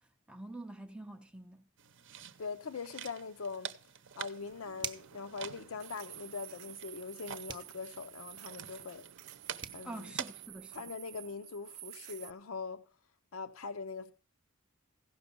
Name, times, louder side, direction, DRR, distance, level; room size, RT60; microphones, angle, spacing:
voice 1, 0.3-1.7 9.8-10.8, right 2 dB, 5° right, 0.4 m, -46 dB
sound 1, 1.8-10.5, right 8 dB, 60° right, 0.8 m, -47 dB
voice 2, 2.4-3.7 4.2-9.0 9.7-10.1 10.7-12.8 13.3-14.1, left 4 dB, 70° left, 0.6 m, -42 dB
sound 2, 4.4-12.3, right 14 dB, 90° right, 0.4 m, -51 dB
sound 3, 4.8-5.2 7.5-7.8 9.3-9.4 9.6-9.8, right 6 dB, 20° right, 0.8 m, -41 dB
16.0 x 6.0 x 5.3 m
head